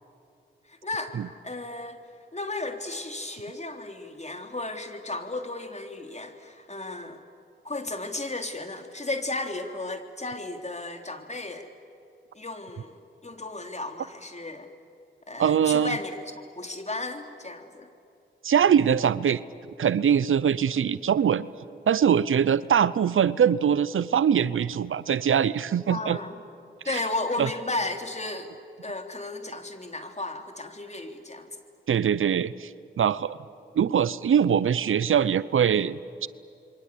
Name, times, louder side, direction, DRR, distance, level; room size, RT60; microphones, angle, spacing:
voice 1, 0.7-1.2 1.4-2.0 2.3-7.2 7.6-11.7 12.3-14.7 15.3-17.9 25.9-26.3 26.8-28.5 28.8-31.6, left 2 dB, 35° left, 5 dB, 3.6 m, -34 dB
voice 2, 15.4-16.0 18.4-19.4 19.8-21.5 21.9-26.2 26.9-27.0 27.4-27.5 31.9-33.4 33.8-36.3, right 8 dB, 80° right, 18 dB, 0.7 m, -22 dB
28.0 x 23.5 x 8.5 m, 2.6 s
cardioid pair, 40°, 20 cm